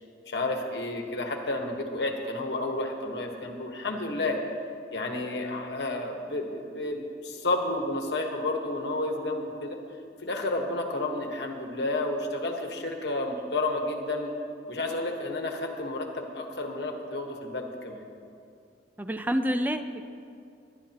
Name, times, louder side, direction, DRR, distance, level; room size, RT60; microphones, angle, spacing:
voice 1, 0.3-4.4 4.9-9.8 10.2-14.3 14.7-18.0, left 2 dB, 65° left, 3 dB, 1.3 m, -31 dB
voice 2, 19.0-20.0, equal, 10° right, 8 dB, 0.5 m, -28 dB
21.5 x 11.0 x 2.9 m, 2.5 s
head